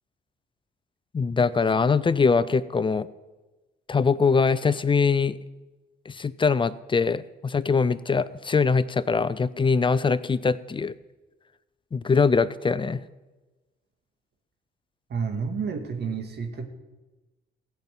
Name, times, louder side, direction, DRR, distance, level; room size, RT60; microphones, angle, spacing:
voice 1, 1.1-3.1 3.9-5.4 6.1-10.9 11.9-13.0, left 5 dB, 25° left, 17 dB, 0.5 m, -22 dB
voice 2, 15.1-16.7, right 5 dB, 55° right, 6 dB, 1.9 m, -30 dB
15.5 x 5.8 x 8.9 m, 1.2 s
cardioid pair, 90°, 20 cm